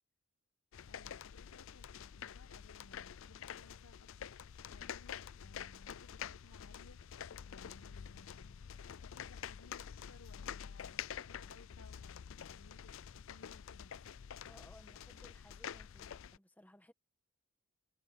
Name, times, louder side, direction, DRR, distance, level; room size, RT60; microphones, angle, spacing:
sound 1, 0.7-16.4, left 8 dB, 60° left, 0.4 m, -48 dB
voice 1, 0.9-7.0 7.4-8.6 9.0-14.0, left 3 dB, 85° left, 1.3 m, -62 dB
voice 2, 14.5-16.9, left 1 dB, 5° left, 1.7 m, -61 dB
head